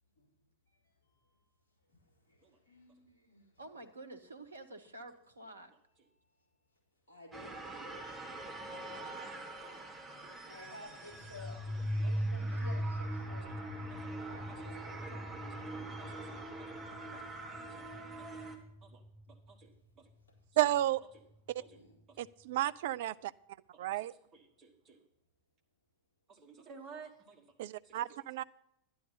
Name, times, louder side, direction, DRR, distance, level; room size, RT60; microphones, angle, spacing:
voice 1, 0.0-3.8 6.0-8.0 10.5-11.7 12.0-13.7 14.1-16.9 19.7-19.8 20.1-20.7 21.7-22.2 24.8-24.9, left 2 dB, 70° left, 4.2 m, -56 dB
voice 2, 3.6-5.7 8.7-9.2, right 2 dB, 75° right, 1.0 m, -50 dB
sound 1, 7.3-18.6, right 2 dB, 10° right, 1.8 m, -46 dB
voice 3, 8.0-10.5 11.7-11.8 13.4-13.5 13.9-14.0 15.5-15.6 16.0-16.2 16.6-16.8 17.1-17.2 17.7-18.5 18.8-20.1 21.6-21.8 23.7-25.0 26.3-27.5 27.8-28.1, right 5 dB, 25° right, 1.6 m, -57 dB
sound 2, 11.1-19.5, equal, 15° left, 1.0 m, -39 dB
voice 4, 20.6-21.0 21.5-21.6 22.2-23.3 23.8-24.1 27.6-28.4, right 14 dB, 55° right, 0.3 m, -32 dB
11.5 x 10.5 x 4.0 m
figure-of-eight pair, 90°, 0 cm